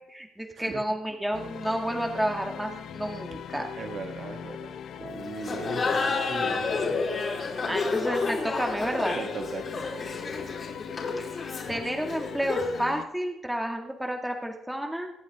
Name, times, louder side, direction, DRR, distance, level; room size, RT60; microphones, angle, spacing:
voice 1, 0.1-3.7 7.7-9.2 11.2-15.1, right 1 dB, 5° right, 2 dB, 2.2 m, -31 dB
sound 1, 1.3-13.0, left 8 dB, 70° left, 0.9 m, -40 dB
voice 2, 3.8-7.0 9.1-10.2, right 4 dB, 50° right, 5 dB, 2.1 m, -39 dB
Laughter, 5.4-12.9, left 4 dB, 45° left, 4.7 m, -30 dB
24.5 x 8.5 x 3.7 m, 0.81 s
cardioid pair, 90°, 0 cm